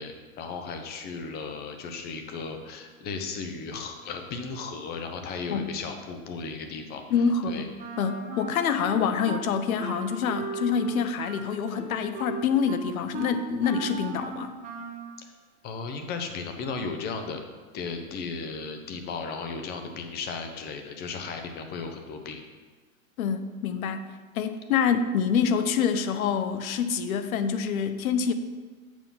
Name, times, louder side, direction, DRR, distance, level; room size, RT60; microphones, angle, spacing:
voice 1, 0.0-7.0 7.5-7.6 15.6-17.4 17.7-22.4, left 4 dB, 20° left, 6 dB, 0.7 m, -35 dB
voice 2, 7.1-14.5 23.2-28.3, left 6 dB, 75° left, 10 dB, 0.8 m, -26 dB
Wind instrument woodwind instrument, 7.8-9.4 9.8-15.1, right 4 dB, 20° right, 0.8 m, -38 dB
7.5 x 5.4 x 5.5 m, 1.4 s
hypercardioid pair, 140°, 43 cm